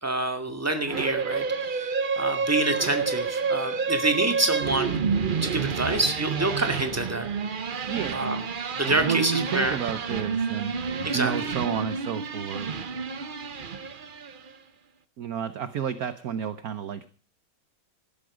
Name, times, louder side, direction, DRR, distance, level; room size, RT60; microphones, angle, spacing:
voice 1, 0.0-5.0 5.4-7.3 8.1-8.4 8.8-9.7 11.0-11.3, right 2 dB, 5° right, 6 dB, 2.1 m, -27 dB
sound 1, 0.9-14.5, right 5 dB, 75° right, 0.4 m, -29 dB
voice 2, 7.8-8.4 8.8-10.7 11.1-12.7 15.2-17.1, right 8 dB, 55° right, 13 dB, 1.1 m, -31 dB
18.0 x 12.5 x 5.1 m, 0.40 s
omnidirectional pair, 2.3 m